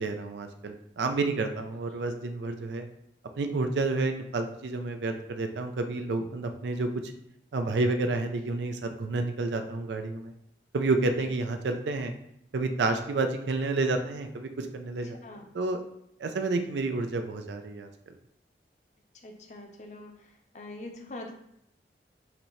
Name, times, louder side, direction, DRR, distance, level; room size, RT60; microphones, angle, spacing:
voice 1, 0.0-2.9 3.4-6.9 7.5-10.3 10.7-12.1 12.5-15.2 15.5-15.8 16.2-17.9, right 3 dB, 80° right, 6 dB, 0.4 m, -30 dB
voice 2, 19.2-20.1 20.5-21.3, left 2 dB, 40° left, 3 dB, 0.6 m, -43 dB
5.8 x 2.7 x 3.1 m, 0.75 s
head